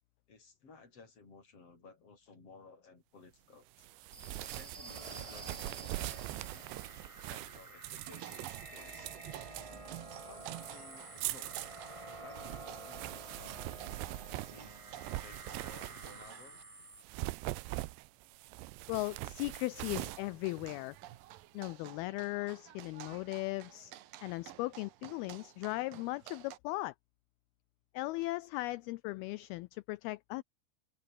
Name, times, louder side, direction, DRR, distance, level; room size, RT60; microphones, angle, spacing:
voice 1, 0.3-3.9 4.3-6.6 7.2-9.1 10.2-11.6 12.2-13.6 14.0-14.8 15.2-16.6, left 4 dB, 35° left, 7.2 m, -57 dB
sound 1, 3.8-16.4 16.9-21.3, right 20 dB, 85° right, 3.0 m, -43 dB
sound 2, 4.1-17.0, right 2 dB, 25° right, 0.7 m, -50 dB
sound 3, 8.1-16.6 19.7-26.6, right 13 dB, 65° right, 2.5 m, -53 dB
voice 2, 18.9-21.0 21.5-23.9 24.2-26.9 27.9-30.4, left 20 dB, 85° left, 2.2 m, -37 dB
omnidirectional pair, 4.9 m